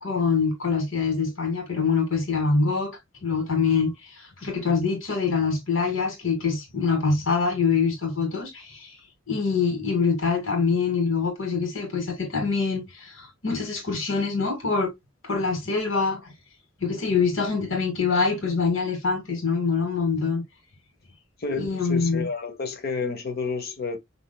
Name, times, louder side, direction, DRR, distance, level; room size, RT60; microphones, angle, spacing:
voice 1, 0.0-8.9 9.3-14.9 15.2-16.3 16.8-20.4 21.6-22.3, left 4 dB, 75° left, 2.4 m, -25 dB
voice 2, 21.4-24.0, left 4 dB, 50° left, 1.0 m, -30 dB
6.2 x 3.4 x 2.3 m
head